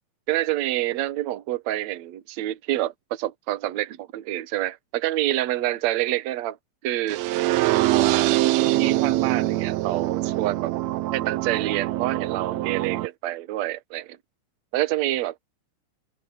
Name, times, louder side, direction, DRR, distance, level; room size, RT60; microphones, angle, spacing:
voice 1, 0.3-6.6 6.8-7.2 7.9-8.4 8.8-10.7 11.1-14.2 14.7-15.3, right 14 dB, 65° right, 2.1 m, -27 dB
sound 1, 7.1-13.1, right 16 dB, 90° right, 1.5 m, -23 dB
open air
omnidirectional pair, 3.7 m